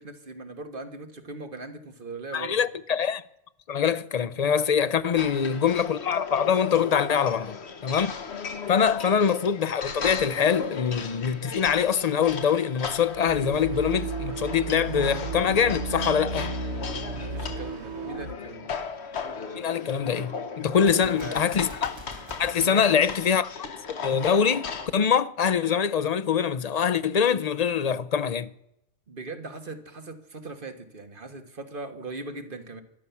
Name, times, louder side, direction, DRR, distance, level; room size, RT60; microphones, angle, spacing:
voice 1, 0.0-2.6 5.1-5.5 8.9-9.0 17.1-18.7 20.9-21.5 22.6-23.1 29.1-32.8, right 3 dB, 50° right, 1.6 m, -40 dB
voice 2, 2.3-3.2 3.7-7.6 7.8-8.1 8.7-16.5 19.6-22.0 22.4-23.5 23.9-28.5, left 7 dB, 45° left, 0.5 m, -24 dB
sound 1, 5.2-24.9, left 5 dB, 65° left, 1.4 m, -37 dB
sound 2, 13.1-18.3, right 3 dB, 70° right, 1.3 m, -33 dB
Gunshot gunfire, 20.7-23.9, right 1 dB, 20° right, 2.0 m, -46 dB
13.5 x 11.0 x 7.0 m
omnidirectional pair, 1.2 m